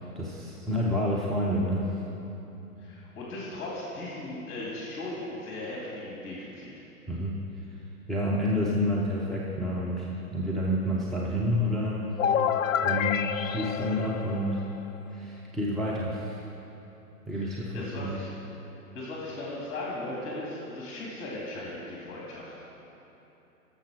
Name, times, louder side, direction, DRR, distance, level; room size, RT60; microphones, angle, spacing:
voice 1, 0.2-1.9 7.1-7.3 8.1-12.1 12.8-14.6 15.1-16.4 17.3-18.2, equal, ahead, -6 dB, 0.5 m, -29 dB
voice 2, 2.8-6.7 17.4-18.3 18.9-22.5, left 2 dB, 25° left, -5 dB, 2.4 m, -37 dB
sound 1, 12.2-15.0, left 8 dB, 60° left, 0.5 m, -28 dB
13.0 x 7.0 x 6.2 m, 3.0 s
figure-of-eight pair, 110°, 45 cm